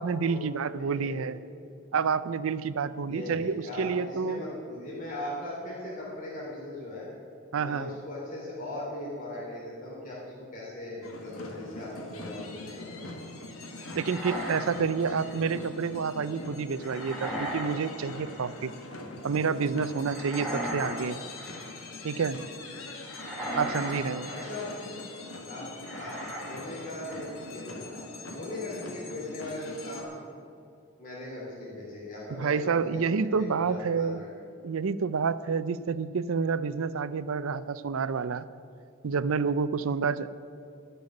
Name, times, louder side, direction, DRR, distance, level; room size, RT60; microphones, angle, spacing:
voice 1, 0.0-1.4 1.9-4.4 7.5-7.9 13.9-18.7 19.2-21.2 22.0-22.4 23.5-24.3 32.4-34.2 34.6-38.5 39.0-40.3, right 5 dB, 75° right, 15 dB, 0.5 m, -29 dB
voice 2, 0.8-1.2 3.1-7.1 7.5-13.1 15.0-15.4 24.3-25.0 25.5-25.7 26.0-26.2 26.5-28.0 28.3-30.3 31.0-34.3, left 1 dB, 40° left, -5 dB, 3.0 m, -39 dB
sound 1, 11.0-30.0, left 2 dB, 85° left, 1.6 m, -42 dB
sound 2, 13.8-15.4 16.8-17.8 18.0-18.6 20.0-21.0 21.3-21.8 23.0-24.7 25.8-26.7 27.0-27.4, equal, ahead, 2.8 m, -37 dB
12.0 x 6.9 x 9.8 m, 2.5 s
head